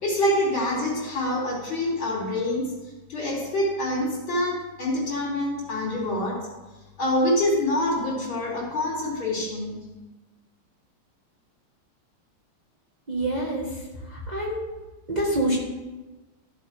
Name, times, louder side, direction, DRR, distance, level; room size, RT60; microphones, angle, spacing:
voice 1, 0.0-2.7 3.1-6.4 7.0-9.8, left 1 dB, 70° left, -5 dB, 4.2 m, -26 dB
voice 2, 13.1-13.8 14.1-14.6 15.1-15.6, right 1 dB, 20° right, -4 dB, 1.6 m, -26 dB
14.5 x 7.2 x 3.5 m, 1.1 s
omnidirectional pair, 2.3 m